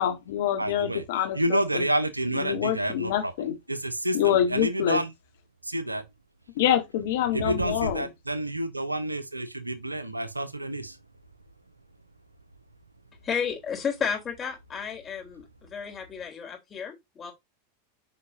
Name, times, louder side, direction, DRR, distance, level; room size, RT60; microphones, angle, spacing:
voice 1, 0.0-1.9 2.3-3.6 4.1-5.0 6.5-8.1, left 10 dB, 60° left, 1.3 m, -26 dB
voice 2, 0.6-1.0 1.4-3.3 3.7-5.1 5.6-6.0 7.3-11.0, right 1 dB, 90° right, 0.7 m, -29 dB
voice 3, 13.2-17.3, left 7 dB, 25° left, 3.6 m, -32 dB
9.3 x 5.2 x 2.7 m
figure-of-eight pair, 90°, 0 cm